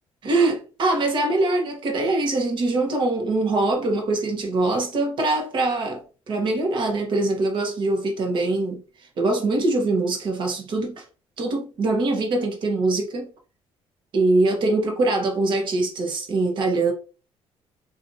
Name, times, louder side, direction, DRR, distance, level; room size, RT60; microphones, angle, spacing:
voice 1, 0.2-6.0 6.3-8.8 9.2-11.0 11.4-13.3 14.1-16.9, right 2 dB, 45° right, 0.9 m, -23 dB
2.8 x 2.4 x 2.6 m
cardioid pair, 150°, 11 cm